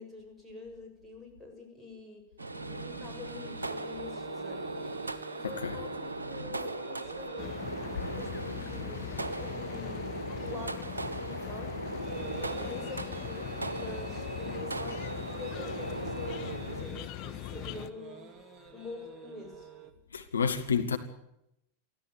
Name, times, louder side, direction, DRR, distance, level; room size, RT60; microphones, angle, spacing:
voice 1, 0.0-2.2 2.7-4.8 5.3-7.6 8.2-9.1 9.4-10.1 10.4-11.7 12.3-18.3 18.7-19.7, left 3 dB, ahead, 7.2 m, -46 dB
sound 1, 2.4-16.8, right 2 dB, 75° right, 1.2 m, -38 dB
sound 2, 2.5-19.9, right 3 dB, 20° right, 2.6 m, -49 dB
voice 2, 5.4-5.8 20.1-21.0, left 6 dB, 70° left, 1.6 m, -29 dB
sound 3, 7.4-17.9, left 16 dB, 40° left, 0.9 m, -41 dB
24.0 x 15.0 x 9.4 m
figure-of-eight pair, 90°, 0 cm